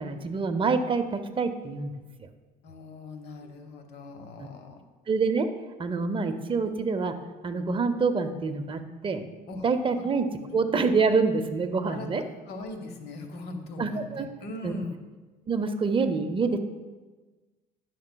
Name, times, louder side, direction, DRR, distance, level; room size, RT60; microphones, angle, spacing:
voice 1, 0.0-1.9 4.4-4.5 5.1-5.5 5.8-7.2 7.4-9.2 9.6-12.2 13.8-14.3 14.6-14.8 15.5-16.6, right 4 dB, 30° right, 8 dB, 0.6 m, -26 dB
voice 2, 2.6-4.8 9.5-9.7 10.0-10.1 10.5-10.6 11.9-12.1 12.5-15.0, left 2 dB, 75° left, 5 dB, 1.0 m, -40 dB
10.5 x 6.5 x 2.2 m, 1.3 s
cardioid pair, 110°, 17 cm